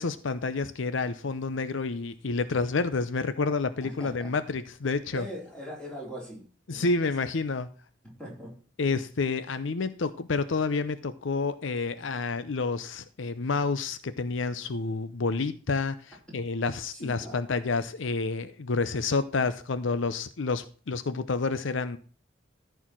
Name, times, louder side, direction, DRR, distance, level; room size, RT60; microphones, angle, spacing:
voice 1, 0.0-5.3 6.7-7.7 8.8-22.0, left 4 dB, 75° left, 13 dB, 0.6 m, -29 dB
voice 2, 3.8-4.3 5.1-6.9 8.0-8.5 16.9-17.4, equal, 5° left, -3 dB, 4.0 m, -41 dB
14.0 x 4.7 x 6.1 m, 0.40 s
head